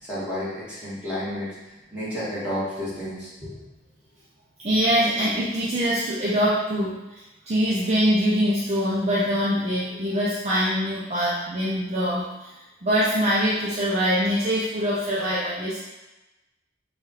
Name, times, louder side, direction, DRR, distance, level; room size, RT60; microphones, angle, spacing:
voice 1, 0.0-1.5 1.9-3.5, equal, 10° right, -11 dB, 1.5 m, -31 dB
voice 2, 4.6-12.5 12.8-15.8, equal, 35° right, -7 dB, 0.5 m, -23 dB
4.8 x 2.3 x 3.0 m, 1.0 s
head